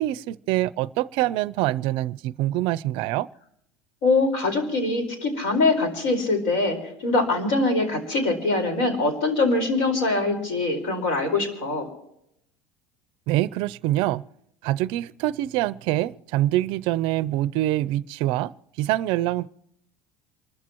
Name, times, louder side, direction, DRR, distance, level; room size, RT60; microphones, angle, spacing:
voice 1, 0.0-3.3 13.3-14.2 14.6-19.5, right 15 dB, 50° right, 0.5 m, -25 dB
voice 2, 4.0-11.9, left 2 dB, 70° left, 4.5 m, -23 dB
28.0 x 14.0 x 3.0 m
cardioid pair, 170°, 11 cm